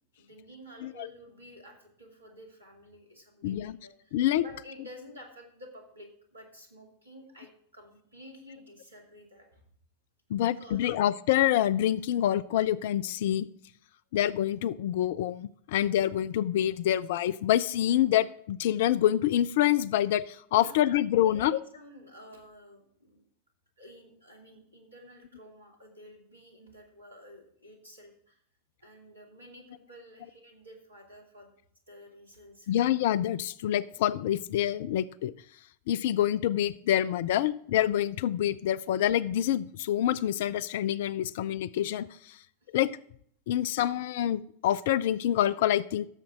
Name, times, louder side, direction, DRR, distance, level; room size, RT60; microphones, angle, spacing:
voice 1, 0.2-9.6 10.4-10.9 20.5-20.9 21.2-23.2 23.8-28.4 28.8-31.5 31.9-32.7 42.6-42.7, equal, 80° right, 1 dB, 2.6 m, -51 dB
voice 2, 3.4-3.8 4.1-4.4 10.3-13.5 14.1-21.6 32.7-35.3 35.9-42.1 42.7-42.9 43.5-46.1, left 12 dB, 55° left, 19 dB, 0.4 m, -26 dB
15.0 x 7.3 x 3.7 m, 0.65 s
figure-of-eight pair, 90°, 0 cm